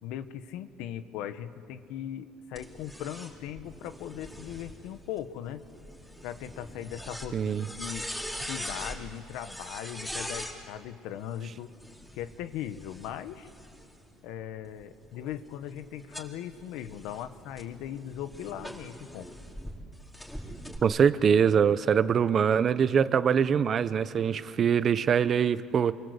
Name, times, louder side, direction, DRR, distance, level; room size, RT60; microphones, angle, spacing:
voice 1, 0.0-5.6 6.2-8.0 8.5-11.7 12.1-13.5 14.2-19.3, left 10 dB, 80° left, 11 dB, 1.4 m, -39 dB
sound 1, 2.6-10.6 11.7-14.1 14.6-19.7 20.1-20.8, equal, 5° left, 4.9 m, -42 dB
voice 2, 7.3-7.7 20.8-25.9, right 7 dB, 40° right, 14 dB, 0.9 m, -23 dB
29.5 x 23.5 x 8.3 m, 2.4 s
cardioid pair, 120°, 0 cm